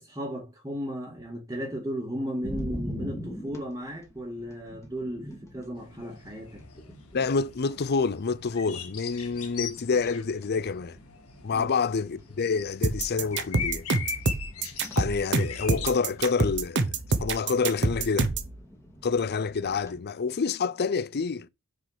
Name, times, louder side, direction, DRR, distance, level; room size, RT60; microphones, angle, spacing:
voice 1, 0.0-6.6 11.5-11.7, equal, 15° right, 2.0 m, -35 dB
sound 1, 2.4-20.0, equal, 15° left, 2.4 m, -44 dB
sound 2, 5.8-16.4, left 7 dB, 75° left, 1.9 m, -41 dB
voice 2, 7.1-11.0 11.4-13.9 15.0-16.8 17.2-18.3 19.0-21.5, left 5 dB, 45° left, 0.5 m, -27 dB
sound 3, 12.8-18.5, right 3 dB, 55° right, 1.1 m, -26 dB
6.6 x 5.0 x 6.5 m
head